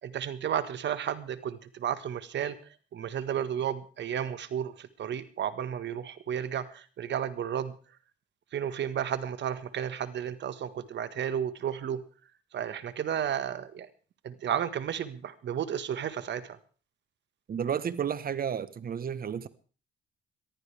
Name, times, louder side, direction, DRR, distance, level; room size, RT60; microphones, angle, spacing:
voice 1, 0.0-2.6 2.9-7.7 8.5-12.0 12.5-13.9 14.2-16.6, right 9 dB, 65° right, 12 dB, 1.7 m, -33 dB
voice 2, 17.5-19.5, right 8 dB, 50° right, 15 dB, 1.3 m, -32 dB
22.0 x 14.5 x 3.5 m, 0.38 s
cardioid pair, 90°, 20 cm